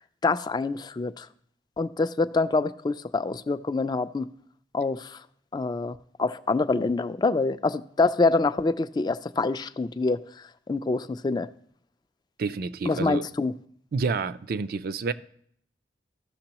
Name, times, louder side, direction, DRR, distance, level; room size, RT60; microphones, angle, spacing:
voice 1, 0.2-1.3 1.8-4.3 4.7-5.2 5.5-10.2 10.7-11.5 12.9-13.5, left 3 dB, 25° left, 0.3 m, -26 dB
voice 2, 12.4-13.3 13.9-15.1, right 4 dB, 55° right, 0.4 m, -29 dB
14.5 x 6.1 x 2.9 m
head